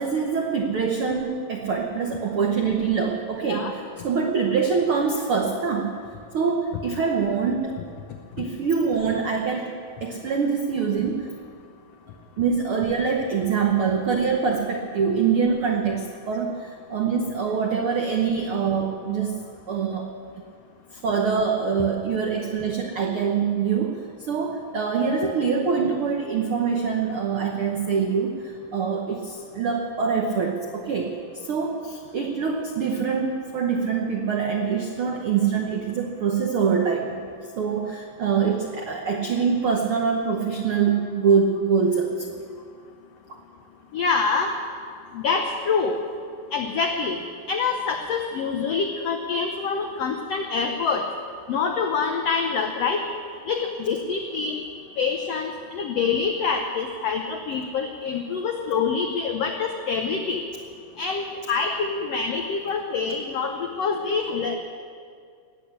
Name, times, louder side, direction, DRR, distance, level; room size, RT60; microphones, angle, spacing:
voice 1, 0.0-5.9 6.3-7.8 8.4-9.7 10.0-11.3 12.4-19.4 19.7-20.1 20.9-37.2 37.6-42.4, right 6 dB, 90° right, 1 dB, 1.2 m, -24 dB
voice 2, 43.9-44.5 45.1-46.0 46.5-47.2 47.5-51.1 51.5-53.1 53.5-54.6 55.0-60.4 61.0-64.5, left 5 dB, 90° left, 4 dB, 1.4 m, -26 dB
19.5 x 8.1 x 8.6 m, 2.2 s
omnidirectional pair, 4.1 m